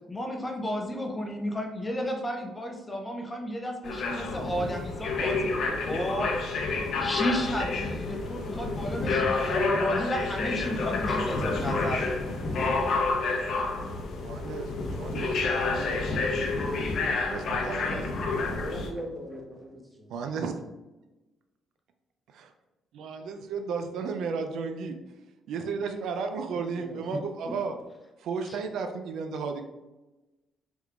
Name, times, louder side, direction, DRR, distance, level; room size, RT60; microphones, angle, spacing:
voice 1, 0.1-6.3 7.0-12.5 28.4-28.6, equal, 20° left, 2 dB, 0.6 m, -33 dB
sound 1, 3.8-18.9, left 3 dB, 65° left, 0.7 m, -29 dB
voice 2, 14.2-14.7 15.0-16.9 17.3-18.1 20.1-20.5 22.3-22.5 22.9-25.0 25.5-27.8 28.2-29.6, right 5 dB, 80° right, 6 dB, 0.4 m, -34 dB
voice 3, 18.3-20.1 26.8-27.0, equal, 10° right, -2 dB, 1.2 m, -40 dB
4.2 x 3.5 x 2.4 m, 1.1 s
cardioid pair, 90°, 0 cm